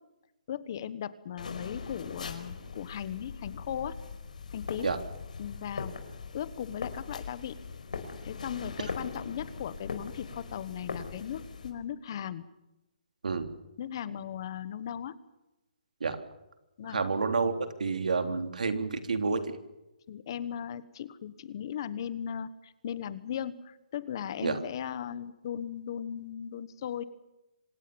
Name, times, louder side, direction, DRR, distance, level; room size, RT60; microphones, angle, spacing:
voice 1, 0.5-4.0 4.5-4.9 5.4-5.9 6.3-7.6 8.2-12.4 13.8-15.1 16.8-17.0 20.1-27.0, left 9 dB, 35° left, 16 dB, 1.3 m, -37 dB
sound 1, 1.4-11.7, left 5 dB, 80° left, 4.7 m, -41 dB
voice 2, 16.9-19.6 24.4-24.6, right 4 dB, 90° right, 7 dB, 3.5 m, -29 dB
26.0 x 19.5 x 7.1 m, 0.95 s
hypercardioid pair, 170°, 4 cm